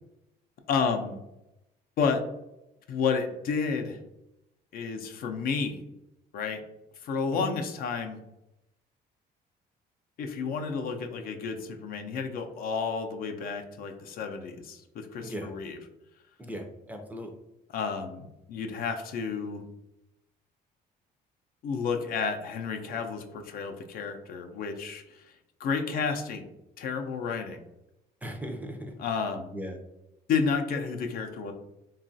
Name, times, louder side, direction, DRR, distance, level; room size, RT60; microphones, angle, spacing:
voice 1, 0.7-1.2 2.0-2.2 2.9-4.0 4.7-5.8 6.3-6.6 7.0-8.2 10.2-15.8 17.7-19.6 21.6-25.3 25.6-26.5 26.8-27.6 29.0-29.5 30.3-31.5, left 5 dB, 60° left, 5 dB, 0.4 m, -31 dB
voice 2, 16.4-17.3 28.2-28.9 29.5-29.8, equal, 10° right, 3 dB, 0.4 m, -37 dB
2.9 x 2.3 x 2.6 m, 0.89 s
cardioid pair, 110°, 17 cm